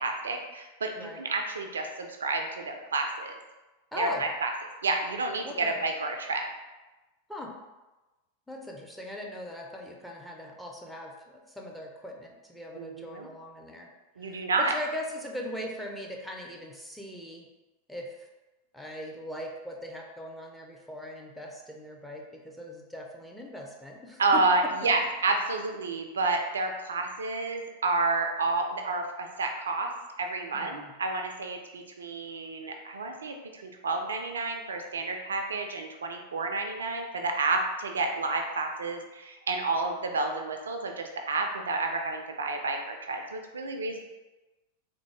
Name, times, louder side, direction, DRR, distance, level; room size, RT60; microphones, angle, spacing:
voice 1, 0.0-3.3 4.0-4.5 4.8-6.5 12.7-13.3 14.2-14.7 24.2-29.9 30.2-44.0, right 3 dB, 70° right, 4 dB, 0.3 m, -30 dB
voice 2, 3.9-4.3 5.4-5.8 7.3-7.5 8.5-13.9 14.2-17.5 17.9-18.3 18.7-24.4 24.8-24.9 30.5-30.9, left 1 dB, 5° left, 0 dB, 0.5 m, -40 dB
3.5 x 2.0 x 3.2 m, 1.1 s
figure-of-eight pair, 90°, 0 cm